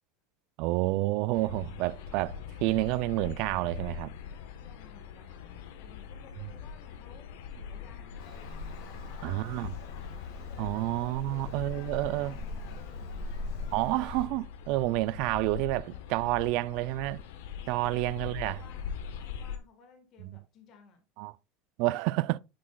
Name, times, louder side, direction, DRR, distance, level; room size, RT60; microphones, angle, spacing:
voice 1, 0.6-4.1 9.2-9.7 10.6-12.3 13.7-17.2 17.7-18.6 20.2-20.3 21.2-21.3 21.8-22.4, right 19 dB, 50° right, 0.3 m, -29 dB
sound 1, 1.3-19.6, left 7 dB, 80° left, 1.1 m, -42 dB
voice 2, 4.3-8.3 8.6-9.6 10.5-13.5 15.4-16.8 17.6-21.0, left 6 dB, 35° left, 1.4 m, -58 dB
Traffic noise roadway noise, 8.2-14.3, left 2 dB, 65° left, 2.0 m, -42 dB
9.4 x 6.0 x 2.2 m
supercardioid pair, 165°, 0 cm